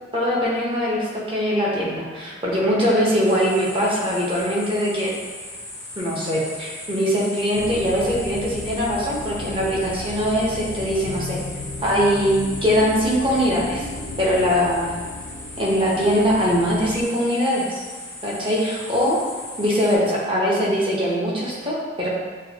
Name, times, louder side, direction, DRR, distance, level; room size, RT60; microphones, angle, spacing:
voice 1, 0.1-5.1 6.0-11.4 11.8-13.9 14.2-14.9 15.6-17.8 18.2-19.2 19.6-22.1, equal, 25° right, -5 dB, 0.8 m, -22 dB
sound 1, 3.2-20.0, left 2 dB, 10° left, 0.5 m, -38 dB
sound 2, 7.6-17.0, left 2 dB, 80° left, 0.3 m, -35 dB
6.2 x 2.3 x 2.8 m, 1.5 s
head